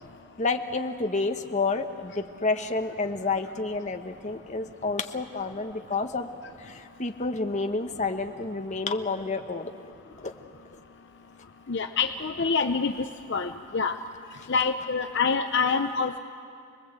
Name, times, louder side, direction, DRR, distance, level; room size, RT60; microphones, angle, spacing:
voice 1, 0.4-6.3 6.6-9.8 10.2-10.3, left 3 dB, 35° left, 5 dB, 1.2 m, -29 dB
voice 2, 11.7-12.9 13.3-14.0 14.5-16.2, left 5 dB, 55° left, 7 dB, 0.7 m, -26 dB
28.5 x 20.0 x 8.1 m, 2.5 s
head